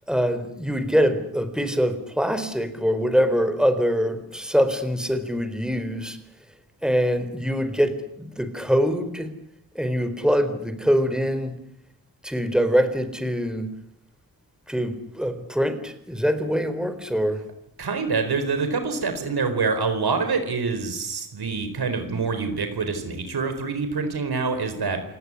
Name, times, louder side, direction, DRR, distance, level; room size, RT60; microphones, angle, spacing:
voice 1, 0.1-6.2 6.8-9.3 9.7-11.5 12.2-13.7 14.7-17.4, equal, ahead, 10 dB, 4.1 m, -24 dB
voice 2, 17.8-25.0, right 4 dB, 85° right, 8 dB, 4.4 m, -26 dB
28.0 x 19.0 x 9.8 m, 0.76 s
wide cardioid pair, 80°, 37 cm